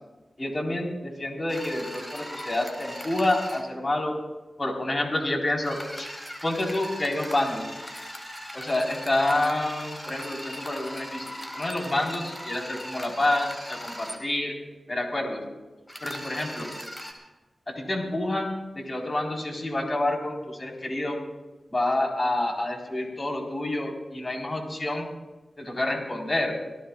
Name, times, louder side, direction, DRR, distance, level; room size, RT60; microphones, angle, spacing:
voice 1, 0.4-4.2 4.6-6.1 6.4-7.7 8.5-14.6 14.9-15.4 16.0-16.7 17.7-21.2 21.7-25.1 25.6-26.5, left 1 dB, 40° left, 0 dB, 4.2 m, -28 dB
sound 1, 1.5-3.6 5.6-14.2 15.9-17.1, equal, 20° left, 4.1 m, -39 dB
26.5 x 18.0 x 2.4 m, 1.1 s
cardioid pair, 50°, 0 cm